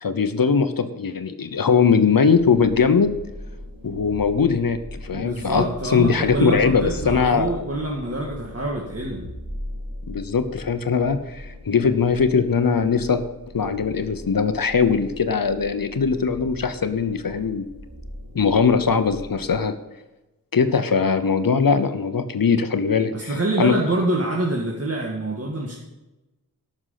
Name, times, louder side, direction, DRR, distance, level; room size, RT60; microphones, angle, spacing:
voice 1, 0.0-3.1 3.8-7.6 10.1-13.2 13.5-17.6 18.3-19.7 20.5-23.8, left 5 dB, 65° left, 10 dB, 0.9 m, -20 dB
sound 1, 2.3-19.6, equal, 65° right, 4.7 m, -39 dB
voice 2, 5.1-9.3 23.1-25.8, right 2 dB, 40° right, -3 dB, 2.0 m, -26 dB
13.5 x 6.4 x 5.8 m, 1.1 s
wide cardioid pair, 60°, 37 cm